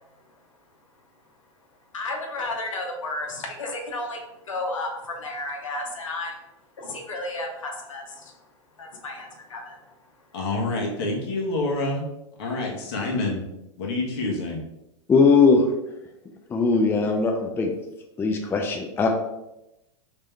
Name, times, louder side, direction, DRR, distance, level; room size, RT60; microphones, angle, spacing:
voice 1, 1.9-4.2 4.5-6.3 6.8-8.3 8.8-9.8, left 2 dB, 90° left, 2 dB, 0.9 m, -32 dB
voice 2, 10.3-12.0 12.4-13.4 13.8-14.6, left 2 dB, 55° left, -1 dB, 1.3 m, -27 dB
voice 3, 15.1-15.7 16.5-17.7 18.2-19.1, left 4 dB, 15° left, 2 dB, 0.4 m, -19 dB
3.4 x 3.3 x 3.3 m, 0.90 s
hypercardioid pair, 120°, 16 cm